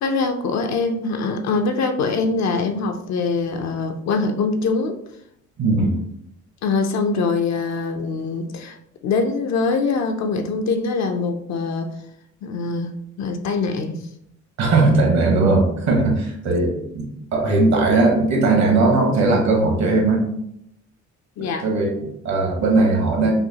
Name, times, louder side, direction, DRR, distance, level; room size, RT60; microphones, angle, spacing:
voice 1, 0.0-5.0 6.6-11.9 12.4-14.1 21.4-21.7, left 4 dB, 65° left, 5 dB, 0.5 m, -23 dB
voice 2, 5.6-5.9 14.6-20.2 21.6-23.3, right 3 dB, 65° right, 1 dB, 1.2 m, -18 dB
5.6 x 2.0 x 2.8 m, 0.74 s
cardioid pair, 90°, 30 cm